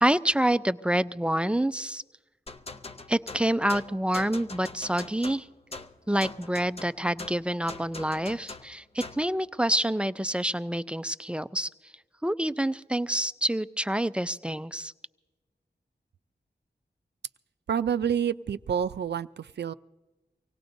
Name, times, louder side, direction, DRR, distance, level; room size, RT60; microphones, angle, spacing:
voice 1, 0.0-2.0 3.1-5.5 6.1-11.7 12.2-14.9, right 1 dB, 5° right, 14 dB, 0.4 m, -27 dB
sound 1, 2.5-9.3, left 3 dB, 35° left, 0.6 m, -42 dB
voice 2, 17.7-19.7, right 8 dB, 75° right, 15 dB, 0.4 m, -28 dB
25.0 x 18.0 x 2.6 m, 1.2 s
wide cardioid pair, 85°, 18 cm